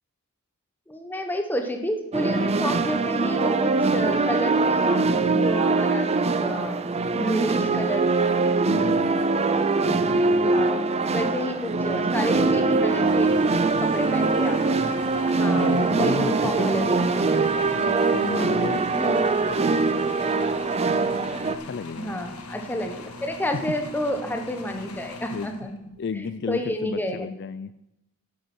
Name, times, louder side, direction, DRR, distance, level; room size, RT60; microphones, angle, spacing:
voice 1, 0.9-6.9 7.1-8.1 10.5-10.8 11.1-13.3 13.8-14.8 15.3-17.7 18.9-19.5 22.0-25.7 26.1-27.3, equal, 10° left, 5 dB, 1.1 m, -30 dB
sound 1, 2.1-21.6, right 3 dB, 30° right, 0.5 m, -22 dB
voice 2, 8.6-9.4 9.8-11.3 15.5-17.3 17.7-19.2 19.5-19.9 21.5-22.2 23.7-23.8 25.3-25.5 26.0-27.7, left 5 dB, 50° left, 13 dB, 0.4 m, -34 dB
sound 2, 13.0-26.0, left 3 dB, 80° left, 1.4 m, -41 dB
10.0 x 8.5 x 6.1 m, 0.89 s
head